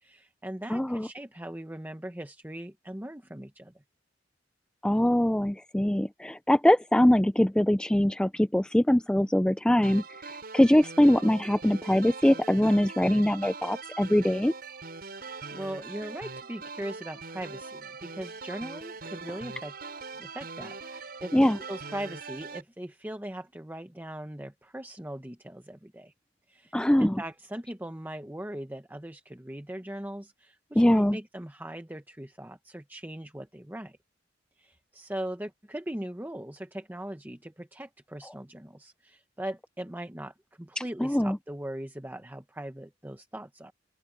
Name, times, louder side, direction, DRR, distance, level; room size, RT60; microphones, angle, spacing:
voice 1, 0.0-3.7 15.2-21.4 21.7-26.1 26.5-34.0 34.6-43.7, right 1 dB, 10° right, 1.1 m, -40 dB
voice 2, 0.7-1.1 4.8-14.5 21.3-21.6 26.7-27.2 30.8-31.2 41.0-41.4, left 1 dB, 5° left, 0.4 m, -23 dB
sound 1, 9.8-22.6, right 4 dB, 55° right, 7.7 m, -42 dB
open air
head